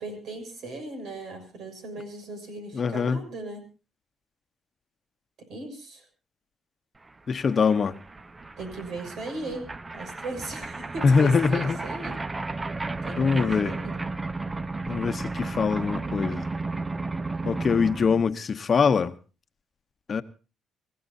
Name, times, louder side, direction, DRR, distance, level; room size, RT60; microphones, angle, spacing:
voice 1, 0.0-3.7 5.4-6.0 8.6-9.7 9.9-12.2 13.0-14.0, right 2 dB, 70° right, 6.5 m, -38 dB
voice 2, 2.7-3.2 7.3-8.0 11.0-11.8 13.2-13.7 14.9-16.5 17.4-19.2 20.1-20.2, left 5 dB, 45° left, 1.0 m, -23 dB
sound 1, 7.1-7.2 7.3-18.2, right 3 dB, 25° right, 0.8 m, -33 dB
25.5 x 15.5 x 2.7 m
cardioid pair, 90°, 0 cm